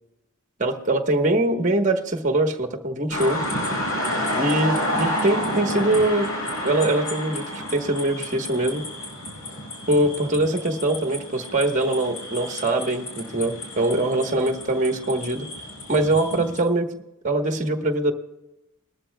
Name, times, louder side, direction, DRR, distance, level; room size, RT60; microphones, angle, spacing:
voice 1, 0.6-3.4 4.3-6.3 6.6-7.4 7.7-8.8 9.9-15.5 15.9-17.0 17.2-18.1, right 1 dB, 35° right, 4 dB, 1.2 m, -23 dB
sound 1, 3.1-16.6, left 1 dB, 80° left, 4.6 m, -30 dB
20.0 x 13.0 x 2.3 m, 0.96 s
head